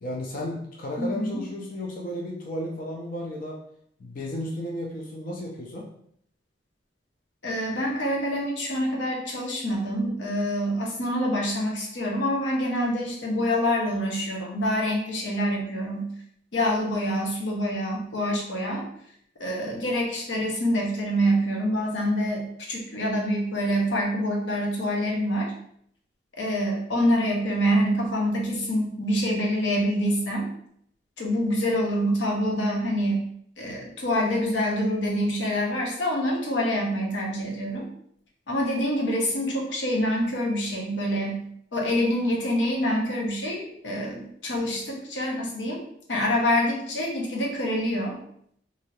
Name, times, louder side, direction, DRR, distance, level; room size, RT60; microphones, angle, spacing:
voice 1, 0.0-3.6 4.0-5.9, left 1 dB, 50° left, -1 dB, 0.5 m, -33 dB
voice 2, 1.0-1.4 7.4-16.1 16.5-18.8 19.4-25.5 26.4-30.5 31.2-33.3 33.6-37.9 38.5-41.4 41.7-45.8 46.1-48.2, equal, 90° left, -1 dB, 0.8 m, -26 dB
2.7 x 2.6 x 3.1 m, 0.68 s
head